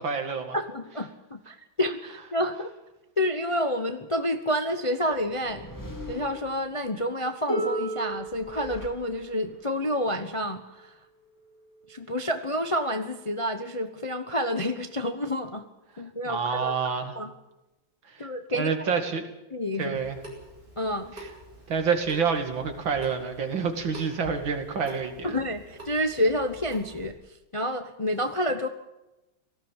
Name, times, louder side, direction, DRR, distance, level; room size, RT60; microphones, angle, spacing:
voice 1, 0.0-0.6 16.3-17.2 18.1-18.3 18.5-19.3 19.8-20.2 21.7-25.3, right 5 dB, 75° right, 6 dB, 2.9 m, -28 dB
voice 2, 0.5-2.7 3.2-5.7 6.1-11.0 11.9-15.6 16.0-16.7 17.1-17.3 18.2-18.9 19.5-20.0 20.8-21.1 25.2-28.7, equal, 25° left, 8 dB, 0.6 m, -29 dB
sound 1, 5.1-7.1 8.1-9.6, left 1 dB, 10° left, 2.9 m, -43 dB
Harp, 7.5-13.3 14.3-14.4, right 2 dB, 70° left, 8.2 m, -36 dB
Water tap faucet / Sink (filling or washing) / Drip, 19.9-27.1, right 1 dB, 25° right, 7.7 m, -47 dB
18.5 x 15.5 x 9.1 m, 0.99 s
omnidirectional pair, 2.1 m